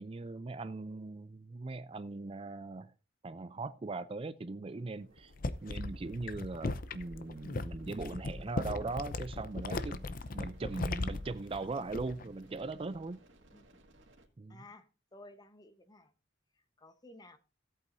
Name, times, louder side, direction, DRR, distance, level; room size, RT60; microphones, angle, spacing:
voice 1, 0.0-2.9 3.2-5.3 5.6-10.0 10.3-13.2 14.4-14.6, right 3 dB, 30° right, 0.4 m, -40 dB
sound 1, 4.7-14.3, right 1 dB, 90° right, 1.9 m, -63 dB
sound 2, 5.2-12.3 12.6-13.0, left 2 dB, 50° left, 0.7 m, -38 dB
voice 2, 14.5-16.1 16.5-17.4, left 2 dB, 20° left, 1.0 m, -55 dB
16.5 x 8.3 x 2.6 m
head